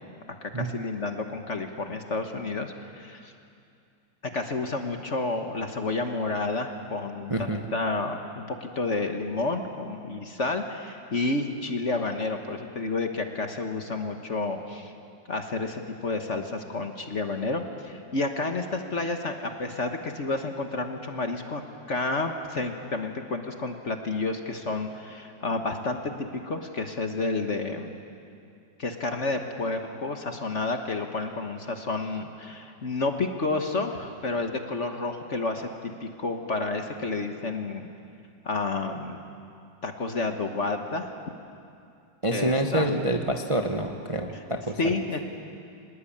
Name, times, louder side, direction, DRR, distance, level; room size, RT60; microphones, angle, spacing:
voice 1, 0.4-3.3 4.3-14.9 15.3-21.6 21.9-27.9 28.8-37.9 38.4-39.2 39.8-41.1 42.3-42.9 44.8-45.2, left 3 dB, 40° left, 5 dB, 1.5 m, -30 dB
voice 2, 7.3-7.6 42.2-44.9, right 1 dB, 20° right, 3 dB, 1.0 m, -27 dB
25.0 x 20.5 x 8.8 m, 2.4 s
omnidirectional pair, 2.1 m